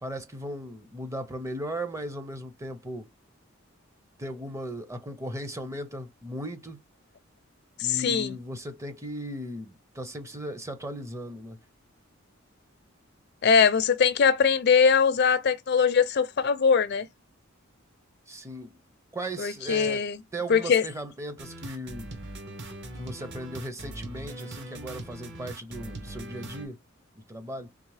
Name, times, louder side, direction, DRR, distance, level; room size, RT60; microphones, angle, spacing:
voice 1, 0.0-3.1 4.2-6.8 7.8-11.6 18.3-18.8 19.1-20.0 20.3-22.1 22.9-26.8 27.3-27.7, right 1 dB, 15° right, 0.5 m, -37 dB
voice 2, 7.8-8.4 13.4-17.1 19.4-20.2 20.5-20.8, left 6 dB, 50° left, 0.4 m, -22 dB
sound 1, 21.4-26.7, right 2 dB, 55° right, 0.9 m, -40 dB
3.6 x 2.8 x 3.2 m
head